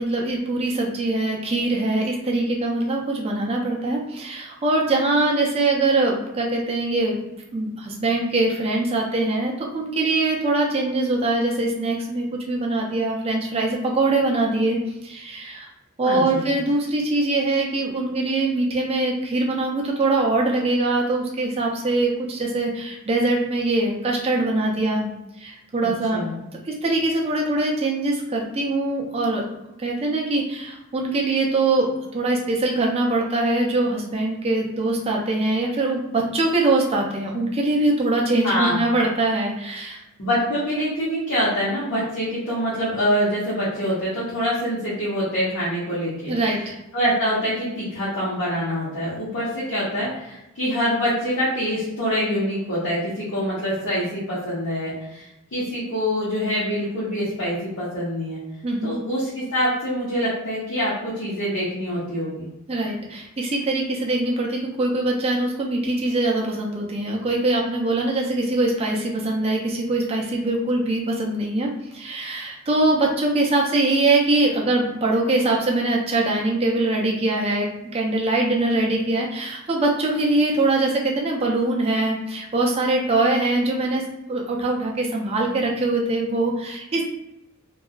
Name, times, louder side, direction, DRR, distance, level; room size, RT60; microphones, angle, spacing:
voice 1, 0.0-7.2 7.5-15.7 16.0-25.1 25.4-26.2 26.6-29.4 29.8-40.0 46.3-46.8 58.6-59.0 62.7-84.0 84.3-87.1, right 2 dB, 30° right, 0 dB, 0.4 m, -23 dB
voice 2, 16.0-16.5 25.8-26.3 38.4-38.8 40.2-46.3 46.9-58.4 58.8-62.4, equal, 60° left, -9 dB, 0.8 m, -25 dB
2.6 x 2.3 x 2.3 m, 0.91 s
head